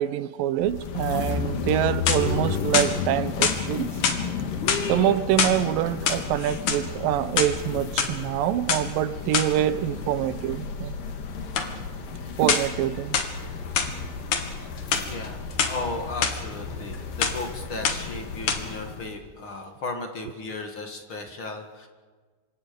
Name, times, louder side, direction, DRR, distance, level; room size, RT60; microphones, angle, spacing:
voice 1, 0.0-3.9 4.9-10.9 12.4-13.2, right 12 dB, 90° right, 2.6 m, -25 dB
sound 1, 0.6-19.2, left 5 dB, 85° left, 3.5 m, -33 dB
sound 2, 1.8-2.4 2.7-3.6 4.0-4.2 4.6-5.6 5.9-6.8 7.2-8.1 8.7-8.8 9.3-9.6 11.5-11.7 12.5-12.8 13.1-13.9 14.3-14.5 14.8-15.7 16.2-16.3 16.7-17.0 17.2-17.5 17.8-18.2 18.5-18.6, left 6 dB, 65° left, 3.0 m, -25 dB
voice 2, 15.0-21.9, left 3 dB, 45° left, 2.2 m, -35 dB
27.0 x 24.5 x 5.2 m
omnidirectional pair, 3.9 m